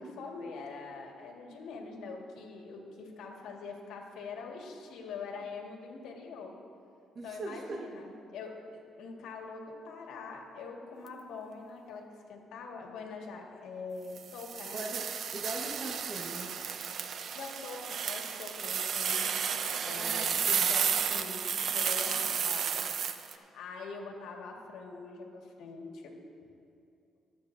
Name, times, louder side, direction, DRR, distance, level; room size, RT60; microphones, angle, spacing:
voice 1, 0.0-6.5 7.2-14.8 17.3-19.3 19.8-20.4 20.6-22.8 23.1-26.2, left 4 dB, 85° left, 1 dB, 1.6 m, -44 dB
voice 2, 7.1-7.9 14.7-16.6 19.9-20.7, right 2 dB, 45° right, 0 dB, 1.2 m, -41 dB
sound 1, 14.2-23.3, right 7 dB, 60° right, 0.6 m, -32 dB
23.0 x 8.3 x 2.6 m, 2.5 s
cardioid pair, 90°, 0 cm